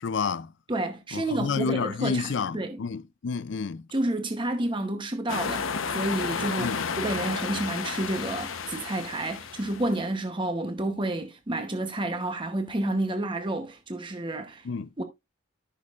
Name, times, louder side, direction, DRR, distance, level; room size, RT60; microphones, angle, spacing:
voice 1, 0.0-0.5 1.1-3.9 6.6-6.9 14.6-14.9, left 5 dB, 65° left, 0.4 m, -30 dB
voice 2, 0.7-2.8 3.9-14.7 15.0-15.1, right 1 dB, 25° right, 0.9 m, -30 dB
sound 1, 5.3-10.0, left 5 dB, 90° left, 0.9 m, -32 dB
14.0 x 6.3 x 2.4 m
head